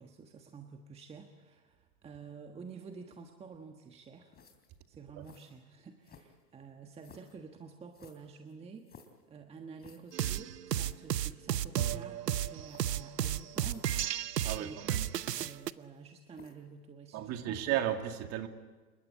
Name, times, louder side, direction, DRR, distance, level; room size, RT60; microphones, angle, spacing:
voice 1, 0.0-4.4 4.9-9.0 9.3-13.9 14.5-14.8 15.4-17.6, right 5 dB, 15° right, 4 dB, 1.4 m, -50 dB
sound 1, 4.3-4.8 5.2-5.5 6.0-6.5 7.0-7.4 7.9-9.2 9.8-10.2 10.5-10.6 10.7-11.0 11.7-11.9 12.7-13.0 13.5-14.0 14.3-14.6 15.3-16.0 16.3-16.7, left 6 dB, 20° left, 3.5 m, -57 dB
sound 2, 10.1-15.7, right 11 dB, 80° right, 0.9 m, -33 dB
voice 2, 14.4-15.0 17.1-18.5, right 11 dB, 30° right, 6 dB, 2.3 m, -34 dB
28.0 x 22.5 x 8.6 m, 1.3 s
hypercardioid pair, 125°, 47 cm